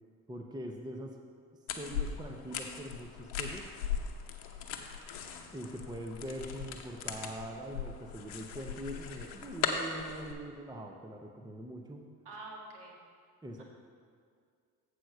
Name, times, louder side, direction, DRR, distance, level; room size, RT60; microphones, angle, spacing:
voice 1, 0.3-1.2 1.7-3.7 5.5-12.1 13.4-13.6, right 1 dB, 10° right, 2 dB, 0.7 m, -43 dB
sound 1, 1.7-10.3, left 7 dB, 75° left, 0.9 m, -39 dB
voice 2, 12.2-13.0 13.6-13.7, right 2 dB, 60° right, -2 dB, 2.0 m, -46 dB
7.5 x 4.9 x 6.7 m, 2.1 s
hypercardioid pair, 50°, 47 cm